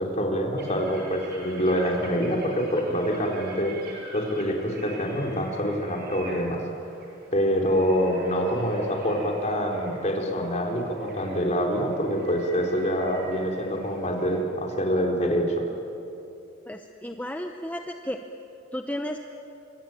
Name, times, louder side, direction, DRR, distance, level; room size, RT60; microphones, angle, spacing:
voice 1, 0.0-3.7 4.1-6.6 7.3-15.6, equal, 35° left, 1 dB, 3.9 m, -26 dB
sound 1, 0.6-14.4, right 2 dB, 50° right, 7.4 m, -47 dB
voice 2, 16.7-18.2 18.7-19.2, equal, 10° left, 4 dB, 0.8 m, -33 dB
26.0 x 23.5 x 9.1 m, 2.9 s
head